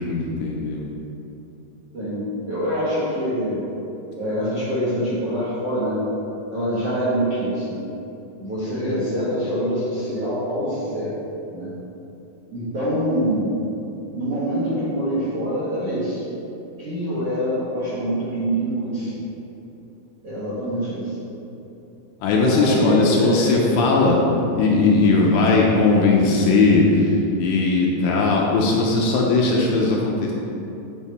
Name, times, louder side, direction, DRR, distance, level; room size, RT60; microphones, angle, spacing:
voice 1, 0.1-0.9 22.2-24.3 24.6-30.3, left 3 dB, 80° left, -2 dB, 2.6 m, -18 dB
voice 2, 1.9-3.6 4.2-6.0 6.5-7.8 8.4-11.1 11.5-11.7 12.5-13.6 14.1-16.2 16.8-19.1 20.2-21.1 22.3-23.5, equal, 55° right, -12 dB, 1.7 m, -25 dB
9.0 x 4.9 x 4.2 m, 2.9 s
omnidirectional pair, 5.3 m